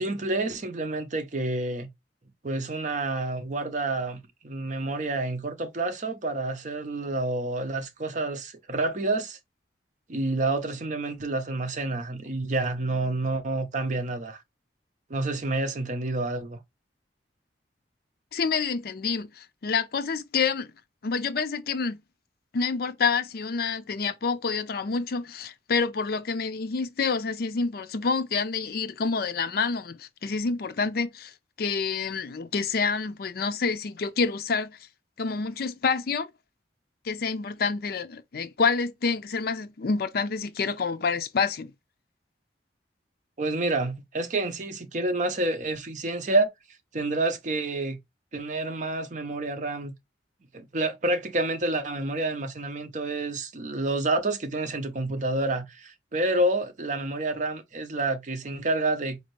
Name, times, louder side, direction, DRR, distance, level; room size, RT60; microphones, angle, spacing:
voice 1, 0.0-1.9 2.4-9.4 10.1-14.4 15.1-16.6 43.4-46.5 46.9-48.0 48.3-49.9 50.5-59.2, right 2 dB, 45° right, 0.7 m, -28 dB
voice 2, 18.3-20.7 21.0-22.0 22.5-31.3 31.6-34.8 35.2-36.3 37.0-41.7, left 5 dB, 60° left, 0.5 m, -28 dB
4.2 x 2.7 x 3.1 m
head